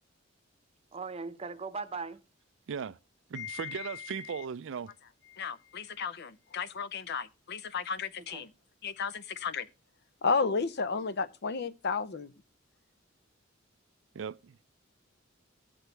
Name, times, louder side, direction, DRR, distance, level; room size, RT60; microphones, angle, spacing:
voice 1, 0.9-2.2 8.3-8.5, right 4 dB, 30° right, 0.8 m, -39 dB
voice 2, 2.7-3.0 3.3-4.9 14.1-14.6, right 6 dB, 70° right, 0.4 m, -37 dB
voice 3, 3.3-4.1 5.3-8.5 8.8-9.7 10.2-12.3, left 5 dB, 55° left, 0.6 m, -33 dB
17.0 x 6.2 x 3.3 m
head